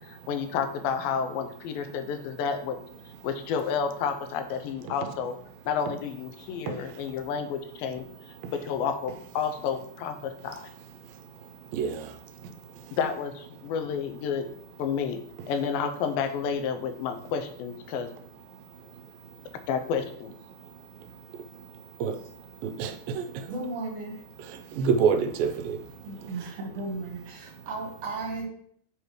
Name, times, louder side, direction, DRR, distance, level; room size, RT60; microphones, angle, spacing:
voice 1, 0.1-2.8 3.2-5.4 5.7-8.1 8.5-10.7 13.0-14.5 14.8-15.2 15.5-18.1 19.7-20.3, left 6 dB, 85° left, 8 dB, 2.4 m, -30 dB
voice 2, 11.7-12.1 22.0-22.1 22.6-23.5 24.8-25.8, right 6 dB, 85° right, 7 dB, 2.4 m, -26 dB
voice 3, 23.5-24.2 26.0-28.5, right 3 dB, 70° right, 0 dB, 2.7 m, -35 dB
7.3 x 4.9 x 3.1 m, 0.64 s
omnidirectional pair, 4.0 m